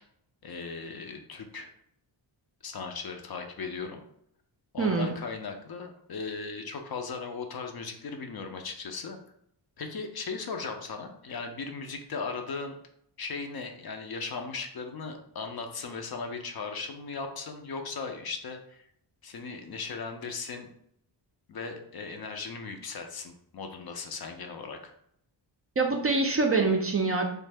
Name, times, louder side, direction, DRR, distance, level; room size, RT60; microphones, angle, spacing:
voice 1, 0.4-1.7 2.6-4.0 4.7-9.2 9.8-12.8 13.2-18.8 19.2-20.7 21.5-24.9, left 4 dB, 50° left, 5 dB, 0.5 m, -37 dB
voice 2, 4.8-5.2 25.8-27.2, right 3 dB, 30° right, 1 dB, 0.4 m, -25 dB
3.2 x 2.0 x 3.3 m, 0.71 s
cardioid pair, 90°, 49 cm